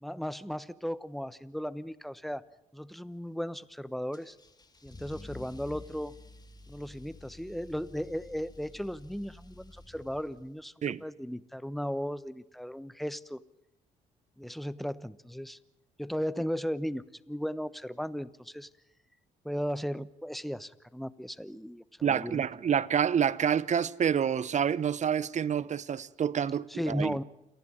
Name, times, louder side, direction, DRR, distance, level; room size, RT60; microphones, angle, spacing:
voice 1, 0.0-2.4 2.7-4.4 4.8-6.1 6.7-10.7 11.0-13.4 14.4-15.6 16.0-18.7 19.4-22.4 26.7-27.2, equal, ahead, 1.0 m, -36 dB
Car / Engine starting / Accelerating revving vroom, 4.1-10.6, left 2 dB, 25° left, 2.2 m, -51 dB
voice 2, 22.0-27.2, right 8 dB, 50° right, 0.9 m, -28 dB
29.0 x 11.0 x 9.7 m
supercardioid pair, 60°, 16 cm